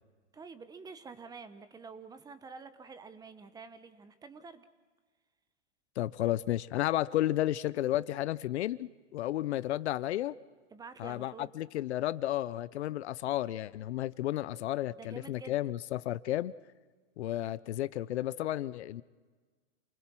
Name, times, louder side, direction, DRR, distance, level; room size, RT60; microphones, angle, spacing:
voice 1, 0.3-4.6 10.7-11.5 15.0-15.6, right 4 dB, 10° right, 0.9 m, -48 dB
voice 2, 6.0-10.3 11.0-16.5 17.2-19.0, left 14 dB, 65° left, 0.7 m, -32 dB
28.5 x 20.5 x 6.1 m
hypercardioid pair, 140°, 36 cm